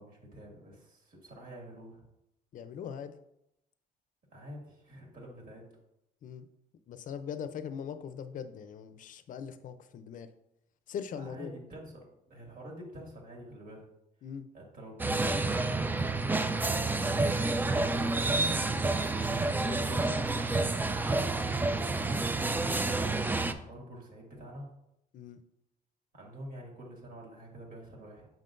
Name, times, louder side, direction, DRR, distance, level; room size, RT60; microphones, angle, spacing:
voice 1, 0.0-2.1 4.3-5.6 11.1-13.8 14.5-19.0 22.0-24.7 26.1-28.3, right 1 dB, 60° right, -1 dB, 2.2 m, -48 dB
voice 2, 2.5-3.1 6.2-6.5 6.9-10.3 10.9-11.6 14.2-14.5 19.6-20.7 25.1-25.4, left 7 dB, 55° left, 11 dB, 0.5 m, -41 dB
sound 1, 15.0-23.5, right 3 dB, 10° right, 0.3 m, -29 dB
7.2 x 5.6 x 2.6 m, 0.82 s
cardioid pair, 130°, 16 cm